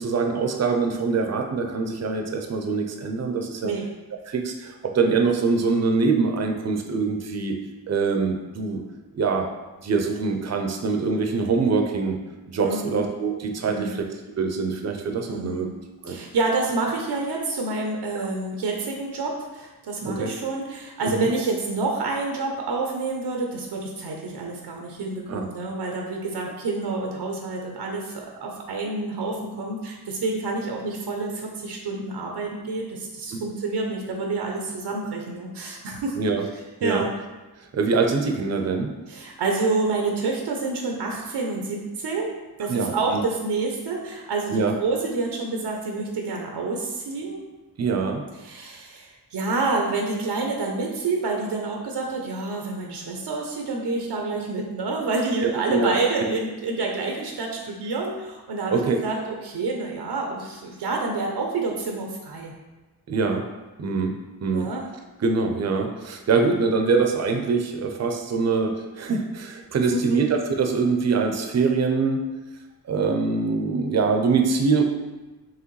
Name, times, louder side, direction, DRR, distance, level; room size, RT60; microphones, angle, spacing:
voice 1, 0.0-3.7 4.3-7.6 7.9-8.8 9.1-9.5 9.8-12.2 12.5-14.0 14.4-15.7 16.0-16.2 20.0-20.3 21.0-21.3 25.3-25.4 33.3-33.4 36.2-36.4 36.8-37.0 37.7-38.9 42.7-43.2 44.5-44.7 47.8-48.2 55.4-55.9 56.3-56.4 58.7-59.0 63.1-63.4 63.8-64.1 64.4-64.7 65.2-72.2 72.9-74.8, right 4 dB, 40° right, 3 dB, 0.6 m, -24 dB
voice 2, 12.6-13.0 13.6-14.0 15.3-15.7 16.1-36.2 36.8-37.1 39.1-47.4 48.4-62.5 64.4-64.9 69.9-70.2, right 3 dB, 85° right, 1 dB, 0.7 m, -28 dB
4.8 x 3.0 x 3.1 m, 1.2 s
wide cardioid pair, 85°, 40 cm